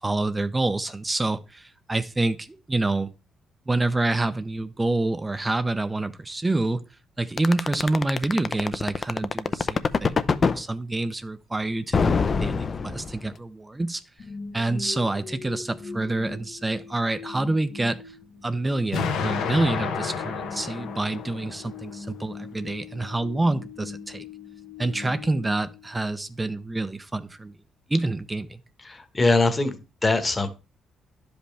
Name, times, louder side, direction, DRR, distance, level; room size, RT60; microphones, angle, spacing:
voice 1, 0.0-3.1 3.7-6.8 7.2-14.0 14.5-18.0 18.4-24.2 24.8-27.5 27.9-28.6, right 2 dB, 15° right, 0.5 m, -27 dB
sound 1, 7.4-10.6 11.9-13.3, left 5 dB, 40° left, 0.5 m, -23 dB
sound 2, 14.2-26.3, left 5 dB, 60° left, 1.2 m, -41 dB
Explosion, 18.9-21.9, left 6 dB, 85° left, 1.1 m, -30 dB
voice 2, 28.8-30.5, left 3 dB, 25° left, 1.3 m, -22 dB
11.0 x 5.2 x 3.3 m
cardioid pair, 90°, 0 cm